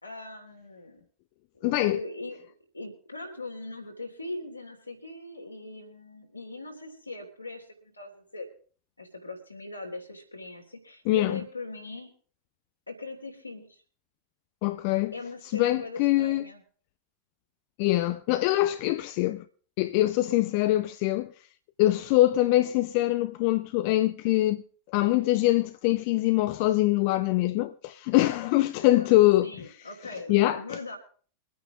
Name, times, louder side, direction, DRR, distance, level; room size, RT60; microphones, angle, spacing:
voice 1, 0.0-1.0 1.5-2.5 2.7-8.5 9.0-12.1 12.9-13.8 15.1-16.6 28.8-29.1 29.4-31.0, left 2 dB, 85° left, 3.1 m, -40 dB
voice 2, 1.6-2.0 11.1-11.4 14.6-15.1 15.5-16.5 17.8-19.4 19.8-21.3 21.8-24.6 24.9-29.5 30.3-30.8, left 16 dB, 45° left, 0.5 m, -23 dB
24.0 x 9.4 x 3.7 m
figure-of-eight pair, 90°, 0 cm